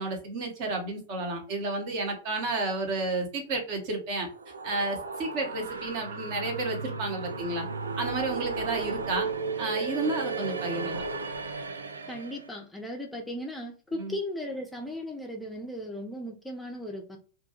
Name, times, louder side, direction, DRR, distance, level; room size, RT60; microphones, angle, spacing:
voice 1, 0.0-4.3 4.6-7.7 8.0-9.3 9.6-11.0 14.0-14.2, right 2 dB, 45° right, 2 dB, 0.8 m, -31 dB
sound 1, 4.2-12.5, right 4 dB, 75° right, 0.3 m, -35 dB
voice 2, 12.1-17.2, left 1 dB, 5° left, 1 dB, 0.4 m, -37 dB
2.4 x 2.2 x 2.8 m, 0.39 s
figure-of-eight pair, 90°, 0 cm